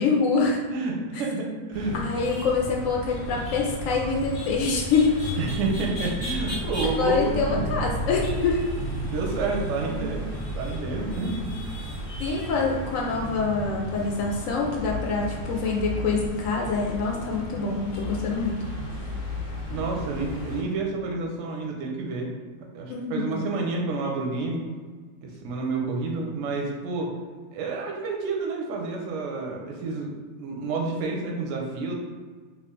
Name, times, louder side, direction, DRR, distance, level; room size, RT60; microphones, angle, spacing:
voice 1, 0.0-0.6 1.9-5.1 7.0-8.6 12.2-18.6 22.9-23.4, left 4 dB, 70° left, -1 dB, 0.8 m, -25 dB
voice 2, 0.7-2.0 3.3-3.4 5.4-7.9 9.0-10.3 10.5-11.4 19.7-22.3 22.7-24.6 25.2-27.1 27.5-30.1 30.4-31.9, right 3 dB, 65° right, 1 dB, 0.8 m, -29 dB
sound 1, 1.7-20.6, equal, 35° left, 0.6 m, -33 dB
3.2 x 2.3 x 3.6 m, 1.5 s
omnidirectional pair, 1.8 m